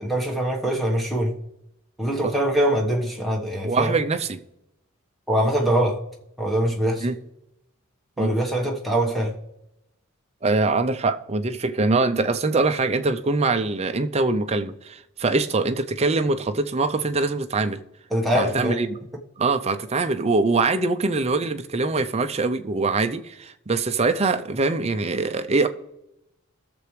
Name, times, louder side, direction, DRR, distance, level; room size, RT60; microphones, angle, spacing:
voice 1, 0.0-1.4 2.0-4.0 5.3-6.0 6.4-7.1 8.2-9.4 18.1-18.8, right 1 dB, ahead, 1.3 m, -23 dB
voice 2, 3.6-4.4 7.0-7.1 8.2-8.3 10.4-17.8 18.3-19.0 19.4-25.7, right 3 dB, 30° right, 0.5 m, -23 dB
20.5 x 7.0 x 3.2 m
head